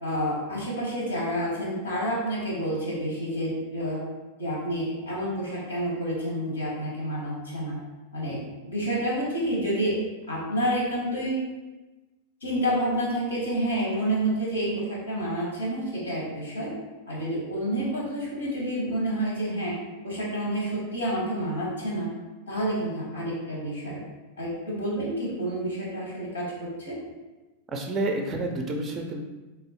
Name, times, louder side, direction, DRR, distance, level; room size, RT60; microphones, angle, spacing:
voice 1, 0.0-4.0 4.4-7.8 8.1-8.4 8.7-10.0 10.3-11.4 12.4-16.7 17.1-19.7 20.0-22.1 22.5-24.0 24.4-27.0, right 1 dB, 75° left, -4 dB, 1.2 m, -29 dB
voice 2, 27.7-29.2, right 2 dB, 25° right, 3 dB, 0.4 m, -29 dB
3.7 x 3.3 x 2.9 m, 1.2 s
figure-of-eight pair, 90°, 0 cm